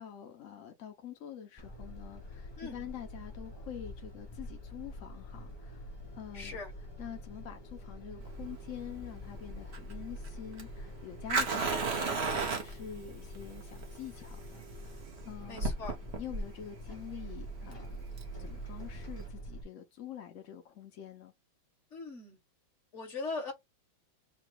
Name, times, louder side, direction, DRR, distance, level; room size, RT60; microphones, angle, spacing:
voice 1, 0.0-6.6 7.0-15.7 16.2-18.0 18.4-21.3, left 10 dB, 65° left, 0.8 m, -46 dB
sound 1, 1.6-19.6, equal, 25° left, 0.6 m, -46 dB
voice 2, 6.3-6.7 15.5-15.9 21.9-22.4 22.9-23.5, left 3 dB, 40° left, 1.6 m, -40 dB
Fire, 8.2-19.3, right 4 dB, 45° right, 0.9 m, -36 dB
4.1 x 2.2 x 4.6 m
omnidirectional pair, 2.1 m